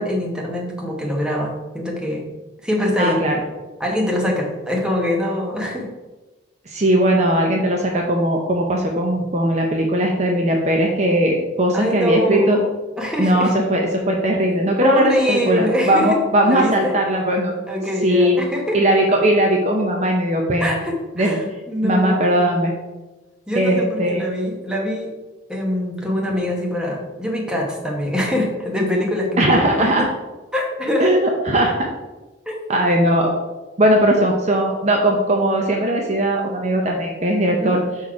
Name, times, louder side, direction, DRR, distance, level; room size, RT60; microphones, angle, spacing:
voice 1, 0.0-2.2 2.6-3.2 3.8-5.9 11.7-12.7 13.0-13.5 14.8-16.2 16.4-17.0 17.7-18.8 20.6-22.8 23.5-25.1 25.5-30.0 30.5-31.1 32.5-32.6 37.4-37.7, left 1 dB, 5° right, -2 dB, 1.0 m, -23 dB
voice 2, 3.0-3.3 6.7-12.6 13.2-17.5 18.0-18.4 18.7-20.8 21.2-21.4 21.8-22.7 23.6-24.2 29.4-30.1 31.0-31.9 32.7-33.3 33.8-37.8, right 1 dB, 35° right, 1 dB, 0.7 m, -18 dB
6.1 x 4.1 x 4.7 m, 1.1 s
head